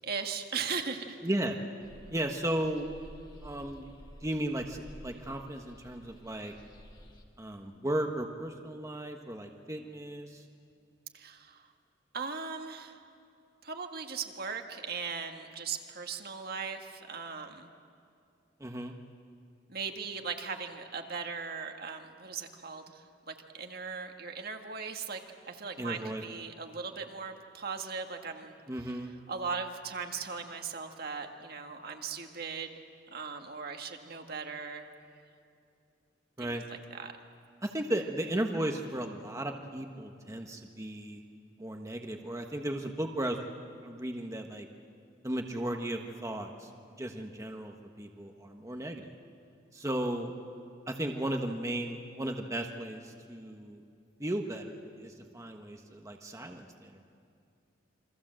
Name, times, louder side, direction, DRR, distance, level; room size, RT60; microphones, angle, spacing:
voice 1, 0.0-1.2 11.1-11.7 12.1-13.0 13.6-17.7 19.7-25.2 25.5-28.5 28.8-29.0 29.3-32.7 33.1-34.9 36.4-37.1, right 5 dB, 55° right, 4 dB, 1.9 m, -38 dB
voice 2, 1.2-1.6 2.1-2.9 3.4-3.9 4.2-6.5 7.4-10.4 18.6-18.9 25.8-26.2 28.7-29.1 36.4-36.6 37.6-41.2 41.6-43.4 43.8-44.7 45.2-46.7 47.0-49.1 49.7-50.3 50.9-53.8 54.2-57.1, right 1 dB, 15° right, 3 dB, 1.3 m, -35 dB
sound 1, 1.8-7.2, equal, 25° left, 2.5 m, -52 dB
28.5 x 24.5 x 7.7 m, 2.5 s
head